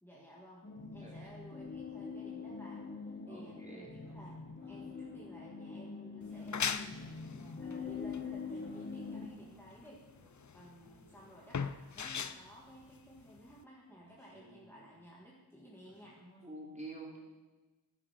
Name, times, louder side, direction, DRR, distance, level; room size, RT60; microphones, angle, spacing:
voice 1, 0.0-7.0 7.5-10.0 10.5-16.2, equal, 5° left, -4 dB, 1.8 m, -55 dB
sound 1, 0.6-9.3, left 5 dB, 25° left, 1.0 m, -44 dB
voice 2, 3.3-3.9 16.4-17.2, right 2 dB, 15° right, -4 dB, 3.9 m, -47 dB
sound 2, 4.0-5.5 6.3-7.7 8.2-11.7 12.1-13.2 13.9-15.1 15.8-16.4, equal, 85° right, 4.1 m, -62 dB
sound 3, 6.2-13.6, left 6 dB, 45° left, 0.6 m, -40 dB
10.0 x 9.8 x 5.8 m, 1.2 s
wide cardioid pair, 75°, 41 cm